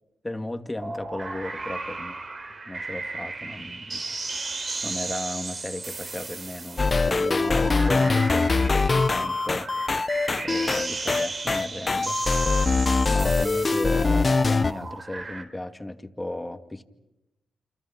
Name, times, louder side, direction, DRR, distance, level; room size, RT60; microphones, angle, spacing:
voice 1, 0.2-2.1 2.7-4.0 4.8-9.7 10.4-12.2 12.5-16.8, left 1 dB, 15° left, 2.4 m, -35 dB
sound 1, 0.8-15.4, right 3 dB, 45° right, 4.3 m, -35 dB
sound 2, 6.8-14.7, left 3 dB, 40° left, 1.1 m, -23 dB
29.0 x 26.5 x 6.0 m
supercardioid pair, 45°, 0 cm